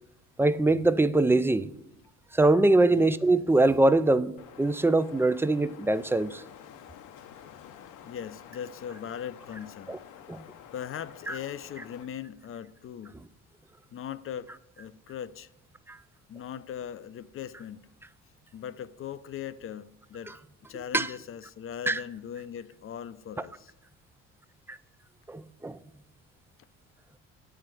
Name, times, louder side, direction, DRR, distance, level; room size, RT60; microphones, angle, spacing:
voice 1, 0.4-1.7 2.3-6.4 9.9-10.0 10.3-10.4 11.3-11.4 15.9-16.0 20.3-20.4 20.9-21.1 21.9-22.0 23.4-23.5 24.7-24.8 25.3-25.8, right 2 dB, 10° right, 0.4 m, -23 dB
Wind, 4.4-12.0, left 9 dB, 70° left, 0.8 m, -50 dB
voice 2, 8.0-10.0 10.7-13.1 13.9-15.5 16.3-17.8 18.5-20.3 20.7-23.7, left 9 dB, 45° left, 0.6 m, -39 dB
9.7 x 4.4 x 7.6 m
cardioid pair, 90°, 31 cm